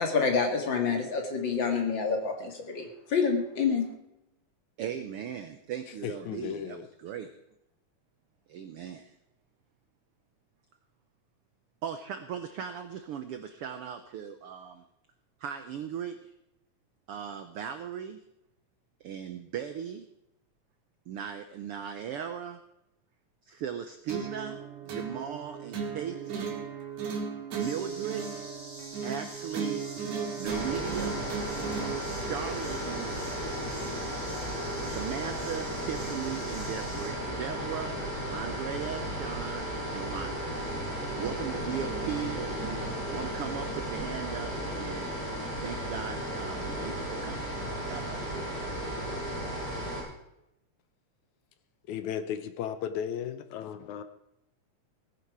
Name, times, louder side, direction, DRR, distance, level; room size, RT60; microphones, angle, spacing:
voice 1, 0.0-3.9, left 5 dB, 40° left, 4 dB, 2.2 m, -28 dB
voice 2, 4.8-7.3 8.5-9.1 11.8-14.8 15.4-16.3 17.1-18.2 19.0-20.1 21.1-22.6 23.4-26.6 27.6-28.5 29.0-29.8 30.4-31.2 32.2-33.2 34.8-37.9 38.3-40.5 41.2-42.8 43.1-45.1 45.6-47.6 47.9-48.4, right 8 dB, 80° right, 8 dB, 1.3 m, -38 dB
voice 3, 6.0-6.8 51.9-54.0, left 9 dB, 75° left, 10 dB, 2.1 m, -35 dB
sound 1, 24.1-32.1, right 6 dB, 60° right, 3.0 m, -36 dB
sound 2, 27.6-37.1, equal, 5° right, 6.9 m, -46 dB
sound 3, 30.4-50.0, equal, 20° left, 7.6 m, -34 dB
17.5 x 10.0 x 4.7 m, 0.85 s
omnidirectional pair, 3.6 m